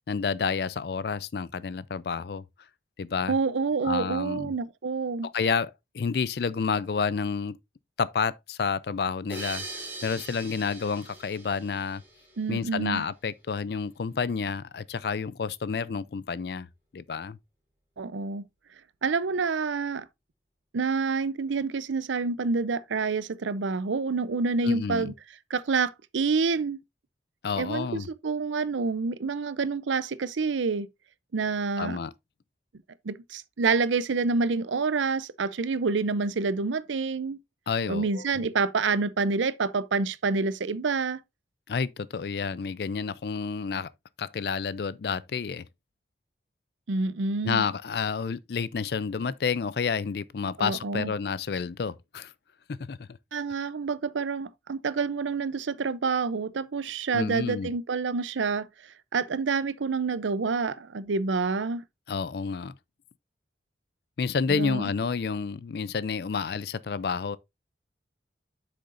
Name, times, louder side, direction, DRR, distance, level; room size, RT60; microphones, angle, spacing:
voice 1, 0.1-2.4 3.0-3.3 3.8-4.5 5.2-7.6 8.0-12.0 12.5-16.7 16.9-17.4 24.6-25.1 27.4-28.1 31.8-32.1 37.7-38.2 41.7-43.9 44.2-45.7 47.4-52.3 52.7-53.1 57.1-57.7 62.1-62.7 64.2-67.4, left 5 dB, 55° left, 0.4 m, -30 dB
voice 2, 3.3-5.3 12.4-13.0 18.0-18.4 19.0-20.1 20.7-25.1 25.5-26.8 27.6-30.9 31.3-32.0 33.0-37.4 37.9-41.2 46.9-47.6 50.6-51.1 53.3-61.8 64.5-64.9, right 4 dB, 85° right, 0.6 m, -28 dB
sound 1, 9.3-12.6, right 3 dB, 10° right, 3.2 m, -41 dB
7.9 x 6.5 x 2.5 m
head